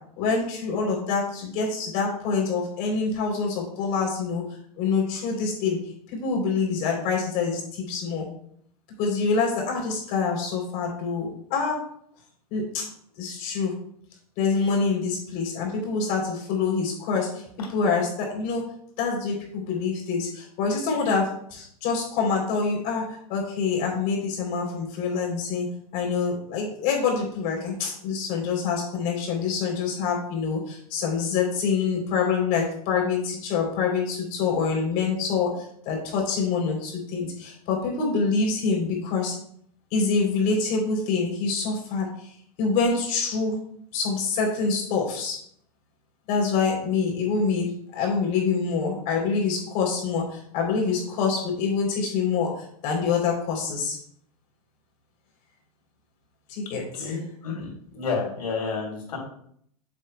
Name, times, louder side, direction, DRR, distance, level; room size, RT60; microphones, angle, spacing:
voice 1, 0.2-4.4 4.8-5.8 6.2-8.2 9.0-11.8 12.5-12.8 13.2-13.7 14.4-17.4 17.7-18.6 19.0-23.0 23.3-25.7 25.9-39.3 39.9-42.3 42.6-43.5 43.9-45.4 46.3-47.7 47.9-52.5 52.8-54.0 56.5-57.2, left 5 dB, 45° left, 0 dB, 3.4 m, -26 dB
voice 2, 56.9-59.2, left 4 dB, 85° left, 0 dB, 3.6 m, -30 dB
10.0 x 7.5 x 2.3 m, 0.66 s
hypercardioid pair, 120°, 20 cm